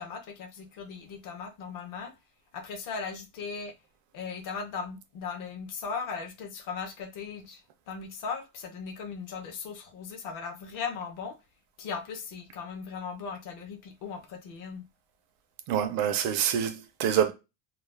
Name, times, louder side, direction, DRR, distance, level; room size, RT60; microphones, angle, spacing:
voice 1, 0.0-2.1 2.5-3.7 4.1-7.6 7.9-11.3 11.8-14.9, left 5 dB, 50° left, 0.6 m, -38 dB
voice 2, 15.7-17.3, right 9 dB, 55° right, 0.5 m, -26 dB
2.4 x 2.0 x 3.1 m
cardioid pair, 180°, 42 cm